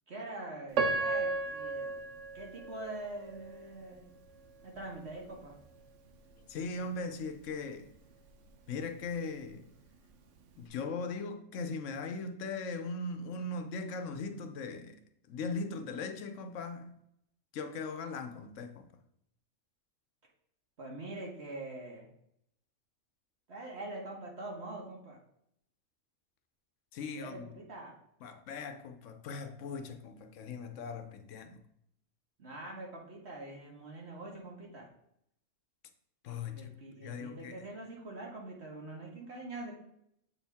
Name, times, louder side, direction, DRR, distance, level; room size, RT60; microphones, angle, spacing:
voice 1, 0.1-2.0 2.3-4.1 4.6-5.5 20.8-22.0 23.5-25.2 27.1-27.9 32.4-34.9 36.5-39.8, right 2 dB, 60° right, 1.8 m, -44 dB
Piano, 0.7-3.8 4.3-4.4 5.1-5.3, right 3 dB, 80° right, 1.1 m, -34 dB
voice 2, 6.5-7.9 8.7-9.6 10.6-14.9 15.3-16.9 17.5-18.9 26.9-27.4 28.2-31.6 36.2-36.7 37.0-37.7, left 3 dB, 85° left, 1.1 m, -39 dB
7.4 x 4.4 x 3.5 m
omnidirectional pair, 1.2 m